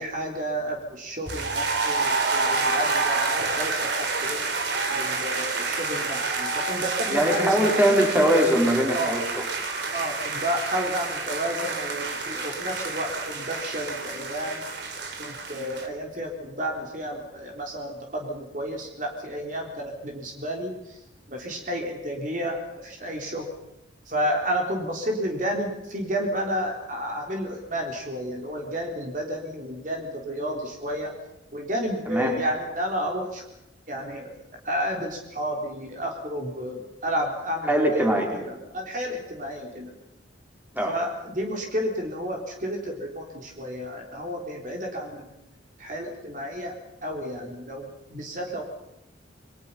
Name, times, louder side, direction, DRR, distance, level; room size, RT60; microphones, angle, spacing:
voice 1, 0.0-4.5 4.9-7.8 8.9-9.2 9.9-14.6 15.2-21.0 21.3-23.5 24.1-31.1 31.5-33.4 33.9-34.3 34.6-38.0 38.3-40.0 40.8-45.3 45.8-46.7 47.0-48.6, equal, 40° right, 1 dB, 3.9 m, -31 dB
sound 1, 1.3-15.9, right 3 dB, 65° right, 3.8 m, -28 dB
voice 2, 7.1-9.4 32.1-32.4 37.7-38.3 40.7-40.9, equal, 10° right, 0 dB, 5.2 m, -21 dB
29.0 x 23.0 x 5.7 m, 0.85 s
head